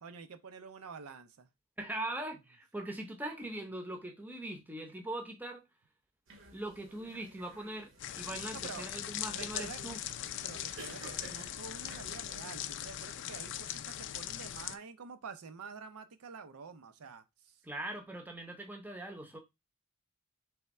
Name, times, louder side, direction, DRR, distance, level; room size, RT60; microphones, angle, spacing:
voice 1, 0.0-1.5 8.5-8.9 9.3-9.8 10.4-17.6, right 5 dB, 80° right, 0.5 m, -48 dB
voice 2, 1.8-5.6 6.5-10.0 17.6-19.4, right 1 dB, 10° right, 0.6 m, -41 dB
sound 1, 6.3-12.5, right 2 dB, 55° right, 0.9 m, -54 dB
sound 2, 8.0-14.8, left 11 dB, 55° left, 0.3 m, -40 dB
3.5 x 3.3 x 4.1 m
head